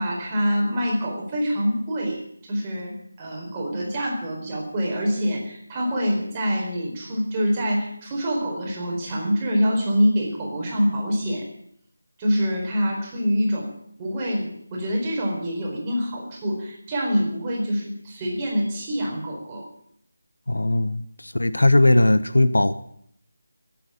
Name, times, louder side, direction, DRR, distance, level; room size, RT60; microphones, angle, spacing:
voice 1, 0.0-11.5 12.2-13.7 14.0-19.7, equal, 20° right, -2 dB, 4.3 m, -25 dB
voice 2, 20.5-22.7, left 2 dB, 70° left, 13 dB, 0.9 m, -19 dB
17.0 x 8.6 x 8.8 m, 0.69 s
figure-of-eight pair, 160°, 0 cm